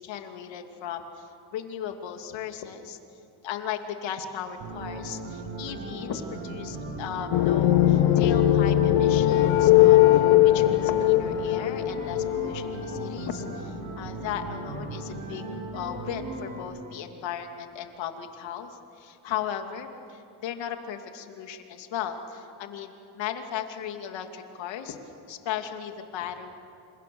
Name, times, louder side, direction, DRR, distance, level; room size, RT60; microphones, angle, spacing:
voice 1, 0.0-3.0 3.4-10.0 10.4-15.5 15.7-25.0 25.3-26.5, left 9 dB, 70° left, 5 dB, 2.7 m, -36 dB
sound 1, 4.6-16.6, right 2 dB, 85° right, 7.5 m, -37 dB
sound 2, 7.3-13.2, left 13 dB, 90° left, 1.3 m, -20 dB
29.5 x 27.5 x 7.1 m, 2.7 s
cardioid pair, 120°, 46 cm